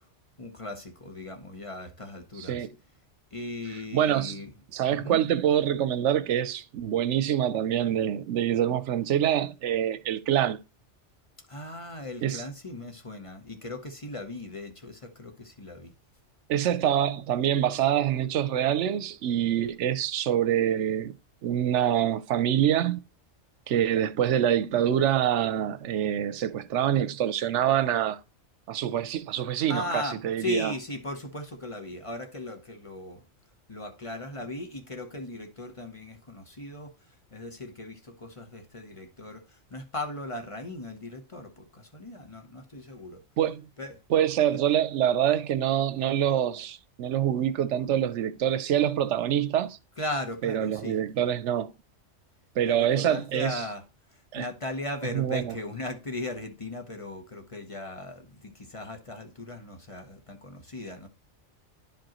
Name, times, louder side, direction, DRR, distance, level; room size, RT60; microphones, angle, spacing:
voice 1, 0.4-2.6 3.3-4.5 4.9-5.2 11.5-15.9 29.7-33.2 33.7-36.9 37.3-39.4 39.7-43.2 43.8-43.9 44.5-44.6 50.0-51.0 52.6-53.8 54.4-61.1, left 2 dB, 30° left, 0.9 m, -37 dB
voice 2, 2.4-2.7 3.9-4.4 4.7-10.6 12.2-12.4 16.5-21.1 21.4-23.0 23.7-28.2 28.7-30.7 43.4-43.6 44.1-49.8 50.4-51.7 52.6-53.6 54.3-54.5 55.1-55.6, right 10 dB, 80° right, 0.9 m, -25 dB
10.5 x 5.2 x 2.9 m
omnidirectional pair, 1.2 m